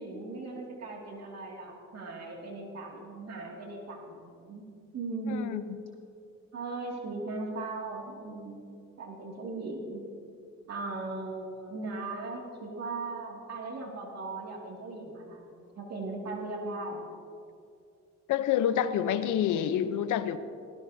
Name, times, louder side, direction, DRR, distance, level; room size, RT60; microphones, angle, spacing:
voice 1, 0.0-4.7 4.9-5.6 6.5-10.0 10.7-17.1, right 3 dB, 60° right, -1 dB, 2.4 m, -38 dB
voice 2, 5.3-5.6 18.3-20.4, left 9 dB, 80° left, 12 dB, 0.8 m, -27 dB
18.5 x 16.5 x 2.8 m, 2.5 s
cardioid pair, 90°, 30 cm